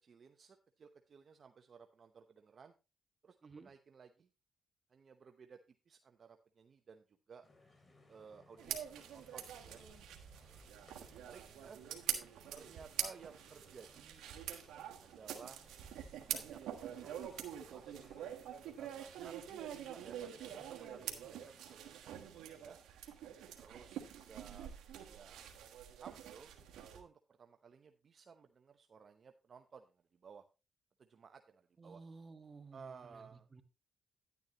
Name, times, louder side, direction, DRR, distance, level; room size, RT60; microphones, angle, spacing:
voice 1, 0.0-2.7 3.2-4.3 4.9-5.6 5.9-7.5 8.1-9.8 11.0-11.8 12.5-14.3 15.0-15.7 16.3-18.0 18.7-19.4 19.9-20.4 20.7-21.9 22.3-22.8 23.6-24.7 25.0-25.6 26.0-26.5 26.9-30.4 31.0-32.0 32.7-33.5, right 6 dB, 55° right, 6 dB, 0.8 m, -57 dB
sound 1, 7.4-21.8, left 2 dB, 35° left, 3.4 m, -66 dB
sound 2, 8.6-27.0, right 10 dB, 90° right, 1.4 m, -45 dB
voice 2, 31.8-33.6, right 4 dB, 35° right, 8 dB, 1.5 m, -55 dB
10.5 x 9.5 x 3.0 m, 0.29 s
cardioid pair, 65°, 0 cm